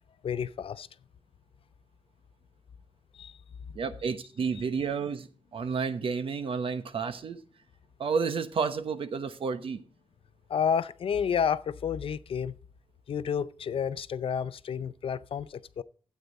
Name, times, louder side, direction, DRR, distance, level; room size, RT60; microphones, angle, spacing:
voice 1, 0.2-0.9 3.1-3.3 10.5-12.5 13.1-15.8, left 7 dB, 70° left, 0.5 m, -30 dB
voice 2, 3.7-7.4 8.0-9.8, right 5 dB, 70° right, 1.0 m, -31 dB
12.5 x 8.4 x 4.1 m
wide cardioid pair, 165°, 10 cm